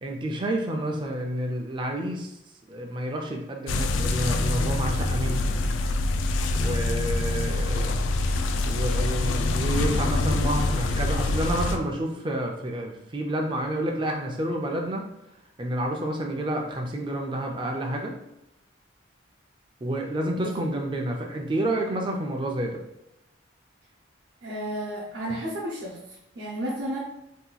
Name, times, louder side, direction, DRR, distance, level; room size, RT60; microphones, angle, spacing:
voice 1, 0.0-2.3 2.7-5.4 6.5-8.0 8.7-15.0 15.6-18.2 19.8-22.8, right 1 dB, 25° right, 1 dB, 0.4 m, -29 dB
sound 1, 3.7-11.8, left 2 dB, 85° left, 0.3 m, -25 dB
voice 2, 24.4-26.0 26.3-27.0, right 1 dB, 70° right, -5 dB, 0.7 m, -32 dB
2.8 x 2.2 x 3.9 m, 0.86 s
head